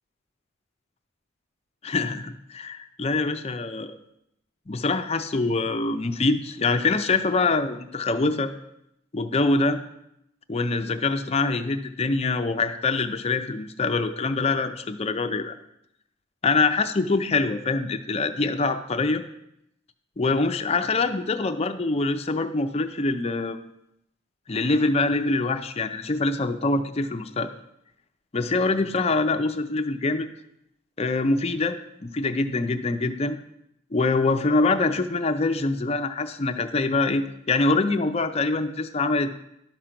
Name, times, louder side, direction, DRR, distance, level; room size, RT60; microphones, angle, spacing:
voice 1, 1.8-3.9 4.7-8.5 9.1-9.8 10.5-15.5 16.4-19.2 20.2-23.6 24.5-27.5 28.3-30.3 31.0-33.4 33.9-39.3, left 3 dB, 30° left, 8 dB, 0.5 m, -24 dB
12.0 x 5.0 x 5.8 m, 0.80 s
head